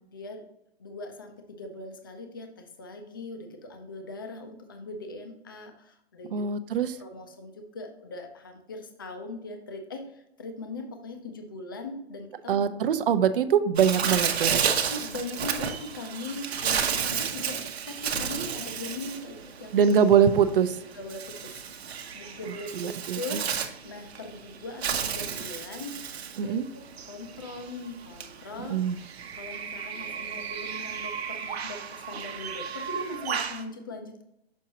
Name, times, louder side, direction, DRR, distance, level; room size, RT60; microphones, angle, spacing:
voice 1, 0.1-0.4 0.8-6.3 7.0-12.6 14.9-19.9 20.9-26.0 26.4-28.8 29.3-34.2, left 2 dB, 20° left, 5 dB, 0.4 m, -40 dB
voice 2, 6.3-7.0 12.5-14.6 19.7-20.8 22.5-23.4 26.4-26.7 28.7-29.0, right 7 dB, 60° right, 11 dB, 0.6 m, -23 dB
Bird, 13.8-33.6, right 7 dB, 75° right, 1.0 m, -32 dB
6.2 x 5.8 x 2.8 m, 0.82 s
hypercardioid pair, 175°, 32 cm